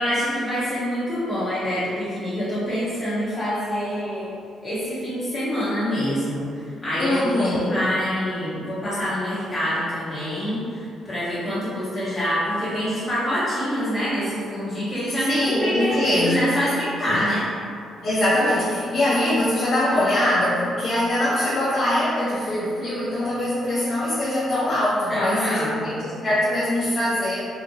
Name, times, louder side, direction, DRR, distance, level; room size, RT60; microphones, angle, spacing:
voice 1, 0.0-4.3 4.6-17.5 25.1-26.0, equal, 20° left, -12 dB, 1.2 m, -26 dB
voice 2, 7.0-7.9 15.3-16.5 17.0-17.2 18.0-27.5, left 1 dB, 50° left, -10 dB, 0.6 m, -23 dB
2.7 x 2.5 x 2.7 m, 2.3 s
cardioid pair, 90°, 0 cm